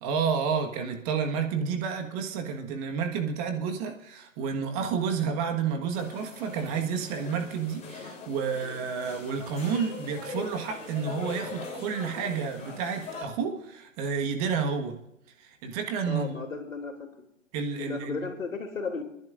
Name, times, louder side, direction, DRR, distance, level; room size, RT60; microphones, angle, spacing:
voice 1, 0.0-15.0 15.4-16.4 17.5-18.3, right 6 dB, 30° right, 5 dB, 1.6 m, -30 dB
sound 1, 5.9-13.2, left 4 dB, 15° left, 3.4 m, -41 dB
voice 2, 16.1-17.3 17.8-19.0, left 4 dB, 85° left, 3 dB, 3.0 m, -35 dB
27.5 x 11.0 x 2.6 m, 0.81 s
hypercardioid pair, 135°, 39 cm